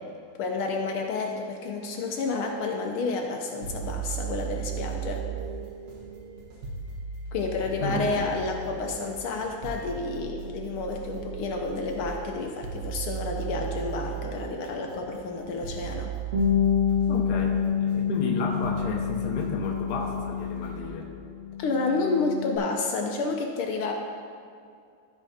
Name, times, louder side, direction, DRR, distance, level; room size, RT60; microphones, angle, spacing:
voice 1, 0.4-5.2 7.3-16.1 21.6-23.9, left 3 dB, 75° left, 2 dB, 1.7 m, -30 dB
sound 1, 3.5-20.8, right 7 dB, 70° right, 2.2 m, -37 dB
voice 2, 7.8-8.3 17.1-21.1, left 2 dB, 55° left, 0 dB, 1.4 m, -32 dB
Bass guitar, 16.3-21.0 21.4-22.6, left 8 dB, 40° right, 1.3 m, -27 dB
14.0 x 4.7 x 4.2 m, 2.3 s
omnidirectional pair, 2.4 m